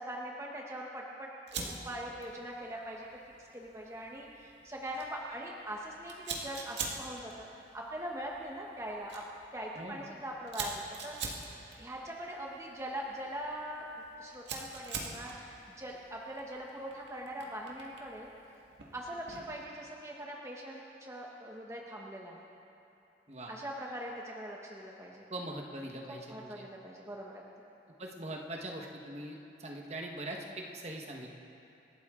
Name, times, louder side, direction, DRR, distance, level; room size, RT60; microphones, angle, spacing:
voice 1, 0.0-3.1 3.4-7.5 7.7-9.2 9.5-11.2 11.8-13.9 14.2-18.3 18.9-22.4 23.5-25.2 26.1-27.4, right 1 dB, 15° right, -2 dB, 1.1 m, -42 dB
Fire, 1.5-19.6, right 4 dB, 85° right, 1.8 m, -46 dB
voice 2, 25.3-26.6 28.0-31.3, right 1 dB, 35° right, 1 dB, 1.3 m, -42 dB
27.0 x 12.5 x 3.8 m, 2.7 s
head